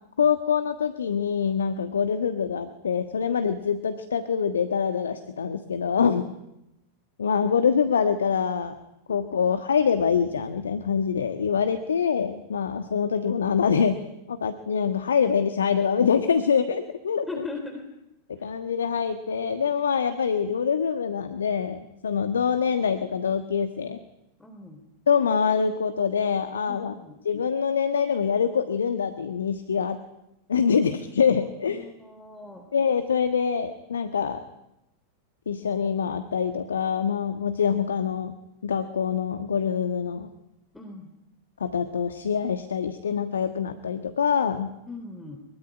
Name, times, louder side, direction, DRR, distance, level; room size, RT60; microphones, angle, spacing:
voice 1, 0.2-6.3 7.2-8.8 9.1-14.0 14.3-17.4 18.4-24.0 25.1-26.9 27.2-30.0 30.5-31.9 32.7-34.4 35.5-38.3 38.6-40.3 41.6-44.7, left 6 dB, 70° left, 9 dB, 1.4 m, -25 dB
voice 2, 17.3-17.8 18.4-18.5 24.4-24.8 26.7-27.2 30.7-30.8 31.3-32.6 40.7-41.1 44.8-45.4, left 3 dB, 5° left, 4 dB, 3.2 m, -39 dB
23.5 x 23.0 x 9.9 m, 0.88 s
figure-of-eight pair, 90°, 0 cm